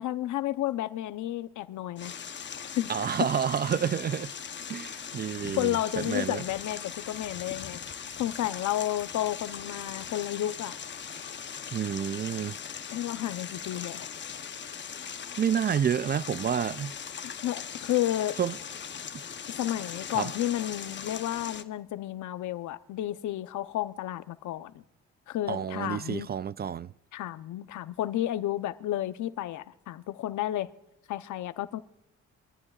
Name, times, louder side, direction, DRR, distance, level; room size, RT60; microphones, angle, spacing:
voice 1, 0.0-2.1 2.8-2.9 5.6-7.8 8.2-10.7 12.9-14.1 17.2-18.4 19.5-24.8 25.3-26.3 27.1-30.7 31.1-31.8, left 13 dB, 75° left, 0.8 m, -31 dB
sound 1, 2.0-21.6, left 7 dB, 35° left, 0.9 m, -40 dB
voice 2, 2.9-4.3 4.7-6.4 11.7-12.5 15.4-16.9 18.4-18.5 20.2-20.3 25.5-26.9, right 8 dB, 35° right, 0.4 m, -29 dB
24.0 x 14.5 x 2.4 m
cardioid pair, 90°, 30 cm